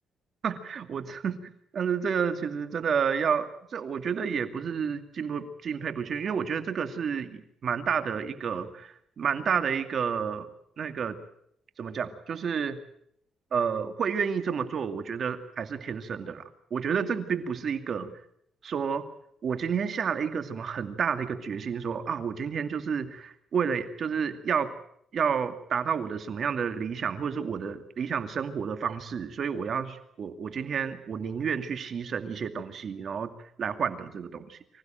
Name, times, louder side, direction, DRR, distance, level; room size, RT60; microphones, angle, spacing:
voice 1, 0.4-1.4 1.7-3.5 3.7-10.5 10.8-11.2 11.8-12.8 13.5-16.4 16.7-18.1 18.6-19.0 19.4-24.7 25.1-33.3 33.6-34.6, right 6 dB, 55° right, 8 dB, 2.4 m, -30 dB
25.5 x 15.5 x 9.1 m, 0.72 s
cardioid pair, 90°, 0 cm